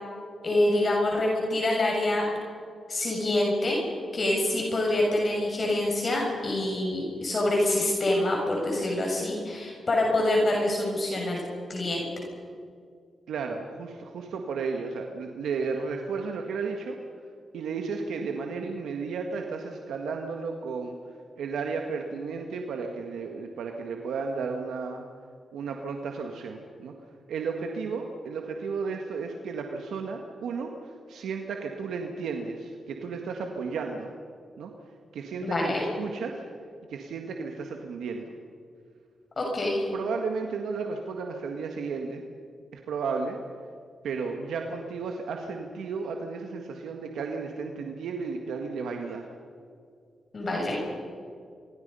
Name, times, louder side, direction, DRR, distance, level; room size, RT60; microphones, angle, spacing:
voice 1, 0.4-2.3 2.9-3.8 4.1-11.4 11.7-12.1 35.4-35.9 39.4-39.8 50.3-50.8, left 1 dB, 50° left, -2 dB, 6.9 m, -26 dB
voice 2, 13.3-17.0 17.5-21.0 21.4-25.0 25.5-26.9 27.3-34.1 34.6-34.7 35.1-36.4 36.9-38.3 39.9-42.2 42.7-43.4 44.0-49.2, right 5 dB, 90° right, 3 dB, 1.7 m, -33 dB
25.5 x 24.5 x 5.6 m, 2.3 s
cardioid pair, 60°, 0 cm